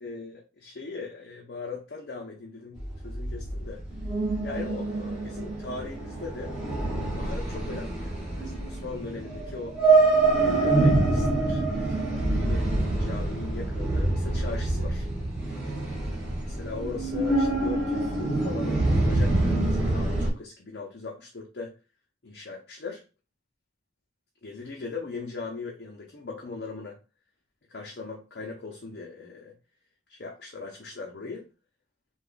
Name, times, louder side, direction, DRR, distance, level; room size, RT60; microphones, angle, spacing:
voice 1, 0.0-3.8 4.4-9.8 10.4-15.0 16.4-21.7 22.2-23.0 24.4-27.0 27.7-29.5 30.1-31.4, left 4 dB, 65° left, 0.7 m, -39 dB
sound 1, 2.8-20.3, right 2 dB, 5° right, 1.3 m, -26 dB
3.3 x 2.4 x 3.8 m
head